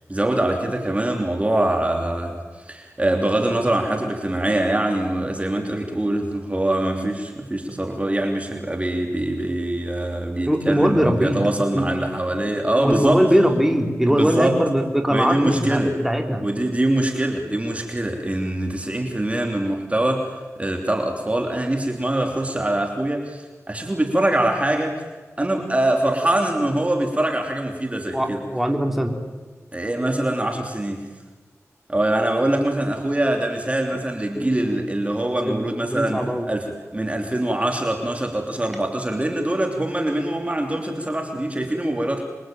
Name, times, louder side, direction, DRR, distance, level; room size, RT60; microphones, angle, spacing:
voice 1, 0.1-13.2 14.1-14.6 15.1-16.0 16.4-20.3 20.6-25.1 25.4-28.4 29.7-31.1 31.9-36.2 36.5-42.2, right 1 dB, 25° right, 2 dB, 3.2 m, -23 dB
voice 2, 10.5-11.5 11.7-11.9 12.8-16.4 28.1-29.1 32.4-32.5 34.3-34.9 35.5-35.7 35.9-36.5, equal, 5° right, 2 dB, 3.8 m, -21 dB
27.0 x 23.0 x 9.1 m, 1.3 s
wide cardioid pair, 65°, 5 cm